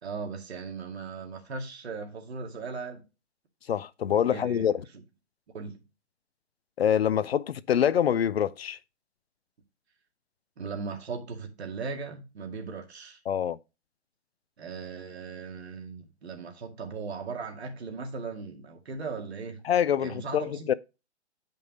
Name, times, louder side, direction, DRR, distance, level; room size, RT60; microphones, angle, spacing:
voice 1, 0.0-3.0 4.3-4.7 5.5-5.8 10.6-13.2 14.6-19.7 20.0-20.7, right 4 dB, 65° right, 2.2 m, -38 dB
voice 2, 3.7-4.7 6.8-8.8 13.3-13.6 19.6-20.7, left 9 dB, 60° left, 0.6 m, -25 dB
9.4 x 5.4 x 3.8 m
hypercardioid pair, 140°, 35 cm